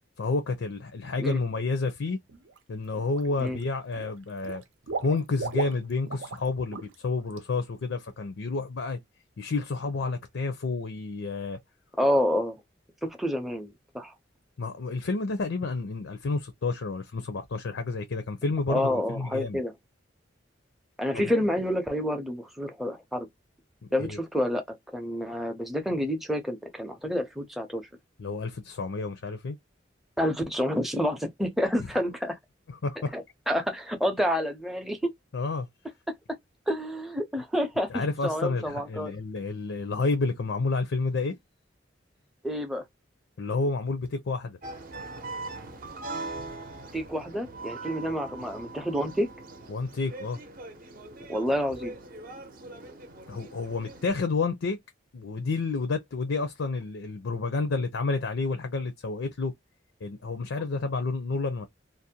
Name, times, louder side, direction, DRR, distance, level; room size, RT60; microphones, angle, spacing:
voice 1, 0.2-2.2 2.7-4.6 5.0-9.0 9.4-11.6 14.6-19.6 21.1-21.3 24.0-24.2 28.2-29.6 32.7-33.2 35.3-35.7 37.9-41.4 43.4-44.6 49.7-50.4 53.3-54.8 55.1-59.5 60.0-61.7, left 3 dB, 80° left, 0.5 m, -30 dB
Water / Liquid, 2.3-2.6 2.9-3.6 3.9-6.5 6.7-6.9 7.3-7.4, right 4 dB, 85° right, 0.6 m, -36 dB
voice 2, 12.0-12.6 13.0-14.1 18.7-19.7 21.0-23.3 23.9-27.8 30.2-32.4 33.0-35.1 36.7-39.1 42.4-42.8 46.9-49.3 51.3-51.9, equal, ahead, 0.5 m, -28 dB
sound 1, 44.6-54.1, right 2 dB, 45° right, 0.6 m, -41 dB
2.5 x 2.0 x 2.7 m
head